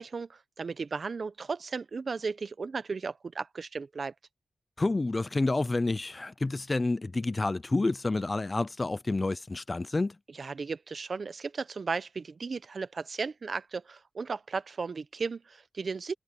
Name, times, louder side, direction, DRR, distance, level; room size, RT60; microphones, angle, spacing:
voice 1, 0.0-4.1 10.3-16.1, right 4 dB, 45° right, 0.7 m, -35 dB
voice 2, 4.8-10.2, left 2 dB, 20° left, 0.3 m, -29 dB
wide cardioid pair, 170°, 0 cm